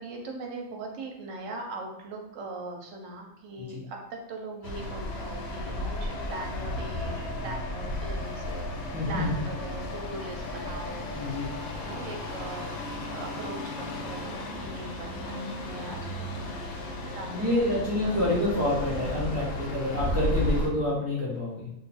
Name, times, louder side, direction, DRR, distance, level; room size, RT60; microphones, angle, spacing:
voice 1, 0.0-8.7 9.1-11.3 11.7-12.7 13.1-18.1 20.1-20.4, right 2 dB, 70° right, 1 dB, 0.9 m, -40 dB
sound 1, 4.6-20.7, left 1 dB, 60° left, 0.7 m, -34 dB
voice 2, 8.9-9.3 11.1-11.5 17.3-21.7, left 1 dB, 20° right, -7 dB, 0.4 m, -28 dB
2.5 x 2.3 x 4.0 m, 0.83 s
omnidirectional pair, 1.4 m